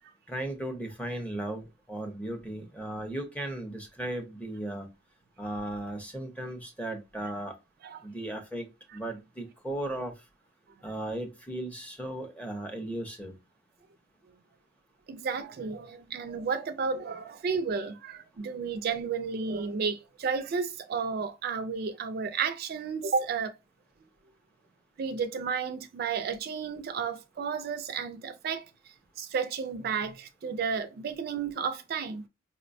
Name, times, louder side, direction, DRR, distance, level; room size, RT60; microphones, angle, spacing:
voice 1, 0.3-4.9 5.4-7.5 8.0-10.1 10.8-13.3, right 1 dB, 5° left, 0.6 m, -36 dB
voice 2, 15.1-23.5 25.0-28.6 29.2-32.3, right 5 dB, 50° right, 0.3 m, -32 dB
4.6 x 2.1 x 2.5 m
head